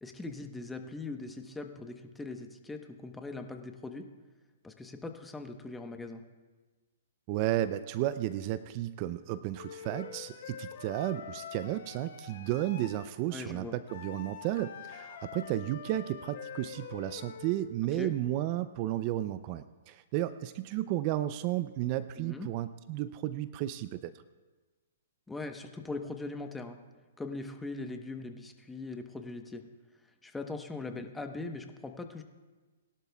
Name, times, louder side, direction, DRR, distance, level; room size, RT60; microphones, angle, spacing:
voice 1, 0.0-4.1 4.6-6.2 13.3-13.8 17.9-18.1 22.2-22.5 25.3-26.8 27.2-29.6 30.2-32.2, left 3 dB, 10° left, 5 dB, 1.0 m, -40 dB
voice 2, 7.3-24.1, right 14 dB, 40° right, 14 dB, 0.4 m, -33 dB
Wind instrument woodwind instrument, 9.6-13.1 13.9-17.6, left 7 dB, 60° left, 1.7 m, -45 dB
21.0 x 12.0 x 2.3 m, 1.3 s
hypercardioid pair, 130°, 0 cm